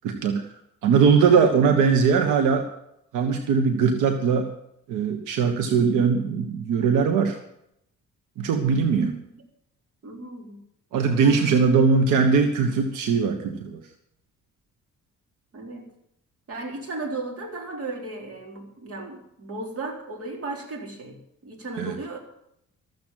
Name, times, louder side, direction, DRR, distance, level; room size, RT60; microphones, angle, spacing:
voice 1, 0.0-0.4 0.8-2.7 3.1-4.5 4.9-7.4 8.4-9.1 10.9-13.8 21.8-22.0, right 5 dB, 90° right, 6 dB, 1.4 m, -20 dB
voice 2, 10.0-10.6 11.2-11.8 15.5-15.9 16.5-22.2, right 2 dB, 50° right, 1 dB, 3.9 m, -35 dB
13.5 x 7.9 x 9.0 m, 0.76 s
cardioid pair, 90°, 30 cm